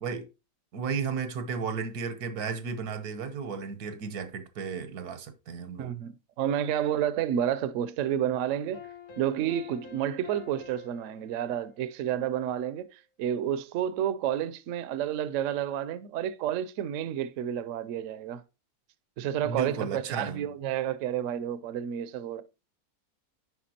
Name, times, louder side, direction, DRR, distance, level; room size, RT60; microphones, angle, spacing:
voice 1, 0.7-5.9 19.4-20.5, right 5 dB, 90° right, 1.4 m, -34 dB
voice 2, 5.8-8.8 9.2-18.4 19.2-22.4, right 10 dB, 70° right, 0.9 m, -30 dB
sound 1, 8.5-12.7, left 6 dB, 80° left, 1.7 m, -49 dB
10.0 x 4.7 x 2.8 m
omnidirectional pair, 1.6 m